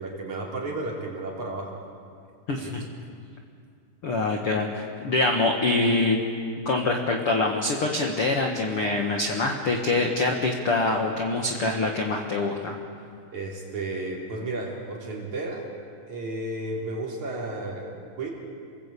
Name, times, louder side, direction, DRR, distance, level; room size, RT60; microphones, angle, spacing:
voice 1, 0.0-1.8 2.5-2.8 13.3-15.7 16.1-17.9 18.2-18.3, right 2 dB, 45° right, -2 dB, 4.8 m, -33 dB
voice 2, 2.5-2.8 4.0-6.2 6.7-12.8, left 2 dB, 55° left, 2 dB, 1.6 m, -25 dB
28.5 x 20.5 x 8.4 m, 2.3 s
omnidirectional pair, 4.9 m